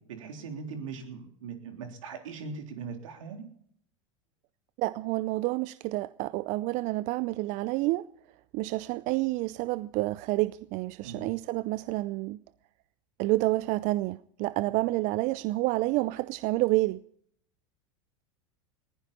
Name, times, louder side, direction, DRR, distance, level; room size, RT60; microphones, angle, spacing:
voice 1, 0.0-3.4 11.0-11.3 14.7-14.8, right 5 dB, 75° right, 3.6 m, -40 dB
voice 2, 4.8-8.1 8.5-12.4 13.2-17.0, right 19 dB, 50° right, 0.6 m, -29 dB
20.5 x 15.5 x 4.3 m
hypercardioid pair, 90°, 17 cm